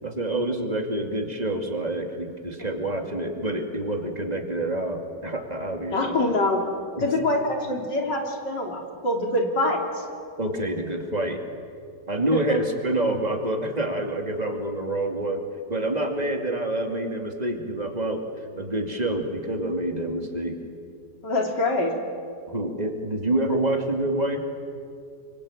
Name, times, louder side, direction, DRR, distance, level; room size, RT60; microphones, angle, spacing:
voice 1, 0.0-6.2 7.0-7.1 10.4-11.4 12.1-15.4 15.7-18.2 18.6-20.6 22.5-24.5, right 1 dB, 20° right, 4 dB, 2.5 m, -27 dB
voice 2, 5.9-6.6 7.0-10.0 12.3-12.6 21.2-21.9, left 2 dB, 80° left, 2 dB, 3.8 m, -25 dB
26.0 x 24.0 x 8.7 m, 2.4 s
omnidirectional pair, 1.9 m